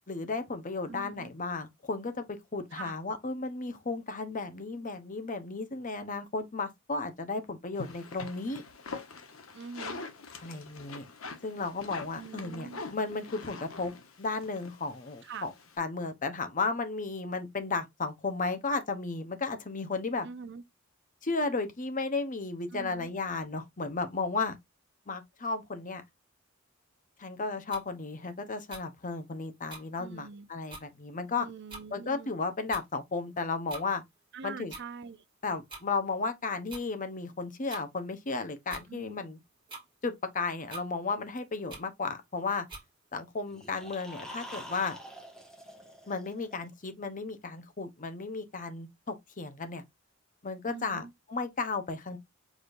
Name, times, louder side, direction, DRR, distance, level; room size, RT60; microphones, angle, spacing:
voice 1, 0.1-8.6 10.4-11.0 11.4-13.9 14.2-20.3 21.2-24.6 25.1-26.0 27.2-31.5 31.9-34.0 34.4-34.7 35.4-39.4 40.0-42.7 43.1-45.0 46.1-49.8 50.4-52.2, left 3 dB, 40° left, 0.9 m, -34 dB
voice 2, 0.9-1.3 2.7-3.0 9.5-10.1 12.1-12.8 15.2-15.5 20.2-20.6 22.7-23.1 30.0-30.5 31.4-32.3 34.3-35.2 38.9-39.2 50.7-51.1, right 5 dB, 60° right, 0.6 m, -44 dB
sound 1, 7.7-15.8, left 4 dB, 80° left, 1.0 m, -44 dB
sound 2, 27.7-27.8 28.7-28.8 29.7-29.8 30.4-30.5 30.7-30.9 31.7-31.8 32.7-32.9 33.7-33.9 34.7-34.8 35.7-35.8 36.7-36.8 37.7-37.9 38.7-38.9 39.7-39.8 40.7-40.9 41.7-41.8 42.7-42.9, right 2 dB, 25° right, 2.3 m, -43 dB
sound 3, 43.5-46.6, equal, 5° left, 1.8 m, -46 dB
5.0 x 4.0 x 2.6 m
head